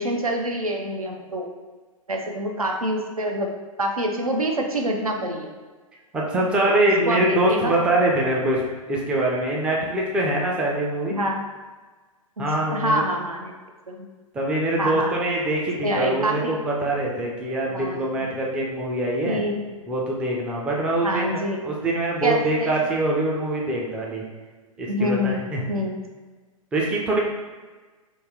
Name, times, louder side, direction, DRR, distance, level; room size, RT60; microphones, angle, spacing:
voice 1, 0.0-1.5 2.1-3.5 3.8-5.5 6.6-7.7 11.0-11.4 12.4-13.5 13.9-14.1 14.8-15.1 15.8-16.6 17.7-18.0 19.3-19.6 21.0-21.6 22.2-22.8 24.9-25.4 25.7-25.9, equal, 85° right, 2 dB, 0.6 m, -26 dB
voice 2, 6.1-8.6 8.9-11.2 12.4-13.0 14.3-19.4 19.9-24.2 24.8-25.7 26.7-27.2, right 1 dB, 5° right, -3 dB, 0.3 m, -24 dB
3.1 x 2.7 x 3.6 m, 1.3 s
figure-of-eight pair, 110°, 18 cm